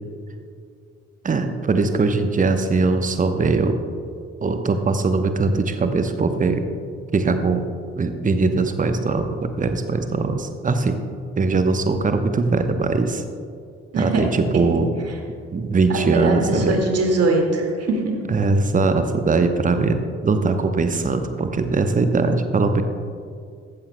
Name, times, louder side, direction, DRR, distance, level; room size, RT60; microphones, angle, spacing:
voice 1, 1.2-3.8 4.4-6.7 7.1-7.7 8.0-11.0 11.4-13.2 14.0-14.9 15.5-16.8 18.3-22.8, right 3 dB, 20° right, 8 dB, 0.9 m, -21 dB
voice 2, 15.9-18.2, right 2 dB, 40° right, 2 dB, 2.1 m, -22 dB
16.5 x 14.0 x 2.2 m, 2.3 s
figure-of-eight pair, 45°, 36 cm